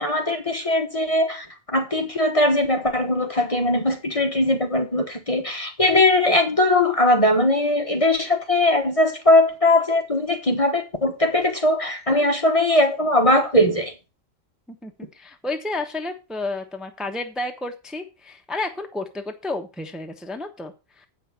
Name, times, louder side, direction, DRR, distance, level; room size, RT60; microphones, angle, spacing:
voice 1, 0.0-1.4 1.7-13.9, left 1 dB, 30° left, 1.2 m, -20 dB
voice 2, 14.8-21.1, left 2 dB, ahead, 1.0 m, -31 dB
8.4 x 6.0 x 5.9 m
omnidirectional pair, 1.3 m